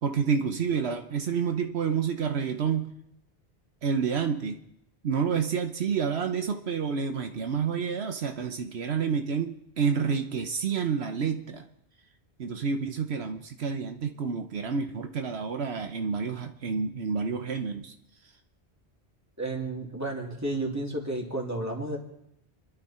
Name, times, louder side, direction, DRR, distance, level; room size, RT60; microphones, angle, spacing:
voice 1, 0.0-2.9 3.8-4.6 5.0-11.6 12.4-17.9, right 6 dB, 75° right, 6 dB, 1.2 m, -29 dB
voice 2, 19.4-22.0, right 2 dB, 15° right, -2 dB, 3.0 m, -32 dB
28.5 x 11.5 x 4.4 m, 0.78 s
omnidirectional pair, 1.1 m